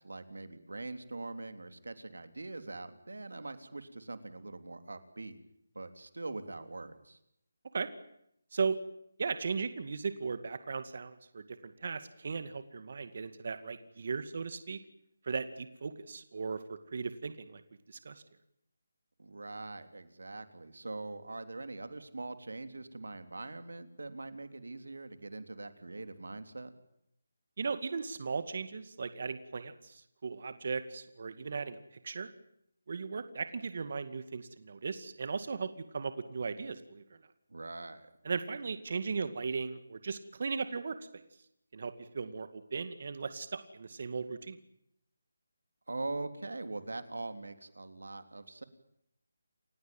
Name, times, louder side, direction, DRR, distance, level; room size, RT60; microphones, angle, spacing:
voice 1, 0.0-5.4 5.8-7.2 19.2-26.7 37.5-38.1 45.9-48.6, right 2 dB, 90° right, 10 dB, 3.5 m, -42 dB
voice 2, 9.2-14.8 15.2-17.6 17.9-18.2 27.6-31.8 32.0-32.3 32.9-37.0 38.2-41.0 41.7-44.6, right 5 dB, 50° right, 11 dB, 2.2 m, -37 dB
29.5 x 16.5 x 9.0 m, 0.75 s
figure-of-eight pair, 165°, 0 cm